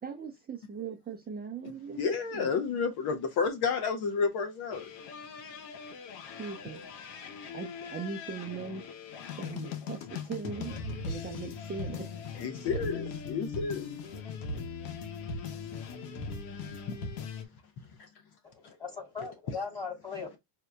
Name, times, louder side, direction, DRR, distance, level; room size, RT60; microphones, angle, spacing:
voice 1, 0.0-2.5 6.4-6.8 7.5-8.8 9.4-10.7 11.0-12.4, right 6 dB, 20° right, 0.6 m, -40 dB
voice 2, 2.0-4.9 12.4-13.9 16.9-17.0, left 5 dB, 50° left, 0.9 m, -30 dB
sound 1, 4.7-17.4, left 4 dB, 85° left, 1.2 m, -40 dB
voice 3, 18.4-20.4, left 5 dB, 10° left, 2.9 m, -39 dB
6.1 x 2.9 x 2.2 m
supercardioid pair, 110°, 50 cm